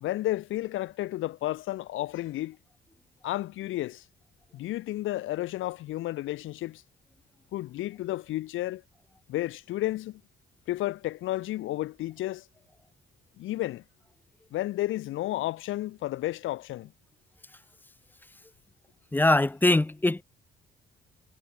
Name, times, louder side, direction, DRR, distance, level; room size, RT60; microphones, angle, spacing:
voice 1, 0.0-2.6 3.2-4.0 4.5-6.8 7.5-8.8 9.3-10.2 10.7-12.4 13.4-13.8 14.5-16.9, left 15 dB, 85° left, 1.1 m, -32 dB
voice 2, 19.1-20.2, left 2 dB, 10° left, 0.5 m, -22 dB
cardioid pair, 90°, 20 cm